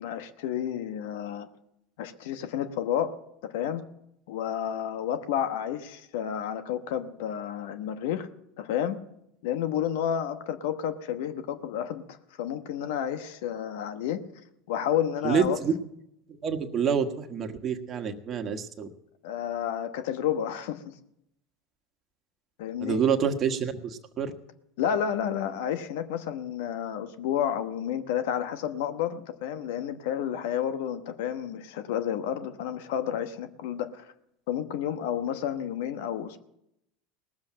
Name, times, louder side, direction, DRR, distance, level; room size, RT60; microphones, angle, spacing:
voice 1, 0.0-1.5 2.0-3.1 3.4-3.8 4.3-8.3 8.6-9.0 9.4-12.0 12.4-14.2 14.7-15.6 19.2-20.9 22.6-23.0 24.8-34.1 34.5-36.4, left 9 dB, 75° left, 10 dB, 1.1 m, -30 dB
voice 2, 15.2-15.7 16.3-18.9 22.8-24.3, right 7 dB, 40° right, 6 dB, 1.4 m, -27 dB
18.5 x 7.5 x 7.5 m, 0.82 s
hypercardioid pair, 90°, 0 cm